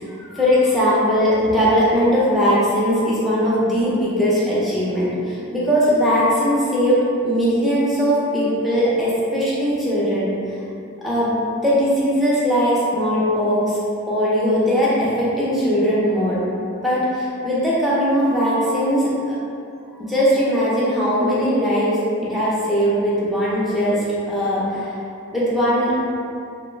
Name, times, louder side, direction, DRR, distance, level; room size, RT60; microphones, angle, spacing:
voice 1, 0.2-10.3 11.0-11.3 11.6-13.8 14.1-16.4 16.8-19.4 20.0-22.0 22.3-24.9 25.3-25.9, equal, ahead, -9 dB, 0.5 m, -19 dB
2.3 x 2.1 x 3.1 m, 2.6 s
head